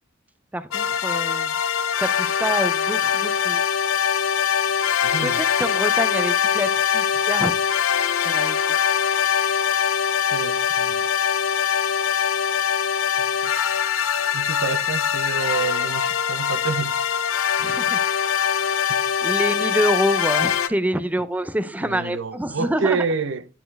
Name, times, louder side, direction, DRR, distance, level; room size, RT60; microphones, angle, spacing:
voice 1, 0.5-1.5 2.0-3.6 5.2-7.6 8.2-8.6 17.6-18.0 19.2-23.0, right 1 dB, 10° right, 0.5 m, -26 dB
sound 1, 0.7-20.7, left 8 dB, 75° left, 0.6 m, -22 dB
voice 2, 5.0-5.4 10.3-11.0 13.2-13.5 14.3-16.9 17.5-17.6 18.9-19.0 21.8-23.5, right 5 dB, 65° right, 0.7 m, -28 dB
10.0 x 4.3 x 3.3 m
head